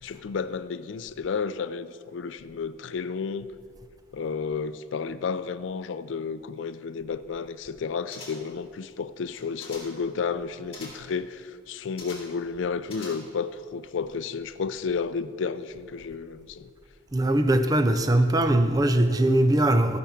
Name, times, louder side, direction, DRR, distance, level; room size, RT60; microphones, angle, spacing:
voice 1, 0.0-3.5 4.1-16.7, left 5 dB, 75° left, 14 dB, 0.4 m, -32 dB
sound 1, 8.1-8.6 9.3-10.1 10.7-11.1 12.0-12.4 12.8-13.5 13.8-13.9, left 3 dB, 30° left, 2.1 m, -44 dB
voice 2, 17.1-20.0, right 1 dB, 20° right, 9 dB, 0.5 m, -21 dB
14.0 x 6.0 x 5.7 m, 2.3 s
head